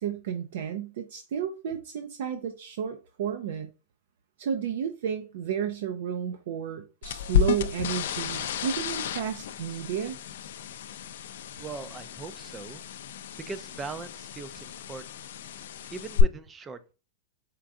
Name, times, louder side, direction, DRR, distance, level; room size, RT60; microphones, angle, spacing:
voice 1, 0.0-3.7 4.4-10.2, right 8 dB, 65° right, 0.5 m, -32 dB
sound 1, 7.0-16.2, left 10 dB, 70° left, 0.4 m, -32 dB
voice 2, 11.6-12.8 13.4-15.0 15.9-16.9, right 4 dB, 15° right, 0.4 m, -40 dB
4.4 x 2.5 x 3.6 m
supercardioid pair, 150°, 0 cm